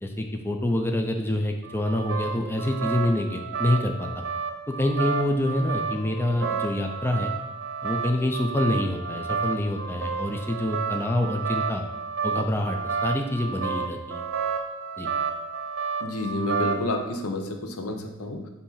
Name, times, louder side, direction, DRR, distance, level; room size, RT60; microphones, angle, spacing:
voice 1, 0.0-4.2 4.7-7.3 7.8-11.8 12.2-14.3 15.0-15.1, left 1 dB, 10° left, 3 dB, 0.4 m, -26 dB
sound 1, 1.6-17.0, right 5 dB, 55° right, 0.8 m, -31 dB
voice 2, 16.0-18.5, left 1 dB, 85° left, 3 dB, 0.8 m, -30 dB
7.1 x 2.8 x 5.5 m, 1.1 s
head